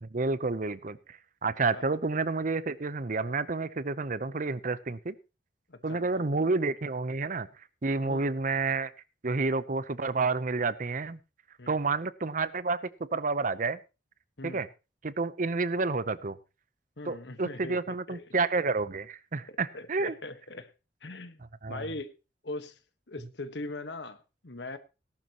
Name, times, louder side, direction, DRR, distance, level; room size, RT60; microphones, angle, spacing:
voice 1, 0.0-5.1 5.8-7.5 7.8-8.9 9.2-11.2 11.7-12.8 13.1-13.8 14.4-14.7 15.0-16.4 17.1-20.1 21.6-21.8, right 3 dB, 45° right, 0.8 m, -30 dB
voice 2, 5.7-6.3 8.0-8.3 11.6-11.8 14.4-14.6 17.0-18.2 19.5-20.7 21.0-21.4 21.7-22.1 22.4-22.8 23.1-24.8, left 2 dB, 65° left, 1.4 m, -41 dB
18.0 x 12.0 x 3.0 m
head